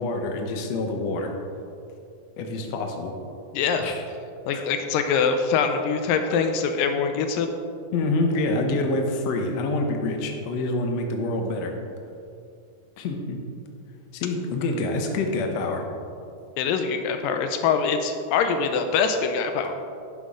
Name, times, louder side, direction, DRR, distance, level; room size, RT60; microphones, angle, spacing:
voice 1, 0.0-1.3 2.4-3.1 3.8-4.0 4.5-4.6 7.9-11.7 13.0-13.4 14.1-15.8, left 2 dB, 65° left, 3 dB, 1.9 m, -26 dB
voice 2, 3.5-3.9 4.5-7.5 16.6-19.7, left 6 dB, 85° left, 6 dB, 2.3 m, -24 dB
11.0 x 10.5 x 3.7 m, 2.5 s
omnidirectional pair, 4.0 m